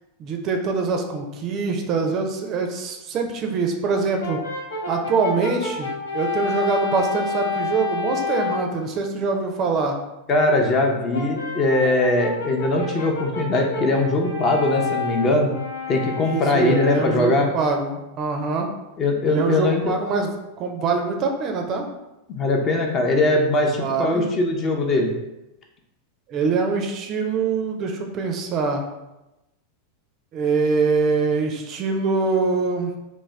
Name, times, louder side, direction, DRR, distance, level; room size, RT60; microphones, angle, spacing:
voice 1, 0.2-4.4 4.9-10.0 16.2-18.7 19.3-21.9 23.8-24.3 26.3-28.8 30.3-32.9, right 4 dB, 35° right, 3 dB, 0.4 m, -24 dB
Brass instrument, 4.2-8.8 11.1-17.5, left 3 dB, 70° left, 0.6 m, -29 dB
voice 2, 10.3-15.5 15.9-17.5 19.0-19.9 22.3-25.1, left 2 dB, 30° left, 2 dB, 0.5 m, -21 dB
3.4 x 2.1 x 3.2 m, 0.97 s
figure-of-eight pair, 90°, 0 cm